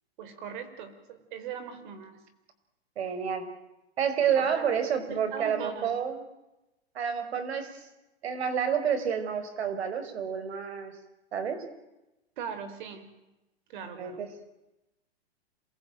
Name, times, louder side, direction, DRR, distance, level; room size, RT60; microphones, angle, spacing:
voice 1, 0.2-2.2 4.4-4.7 5.1-5.9 12.4-13.1 13.7-14.2, right 7 dB, 50° right, 10 dB, 5.2 m, -40 dB
voice 2, 3.0-3.5 4.0-6.2 7.0-7.9 8.2-10.9 11.3-11.6 14.0-14.3, right 7 dB, 75° right, 10 dB, 5.3 m, -29 dB
27.0 x 21.5 x 9.3 m, 0.97 s
hypercardioid pair, 155°, 32 cm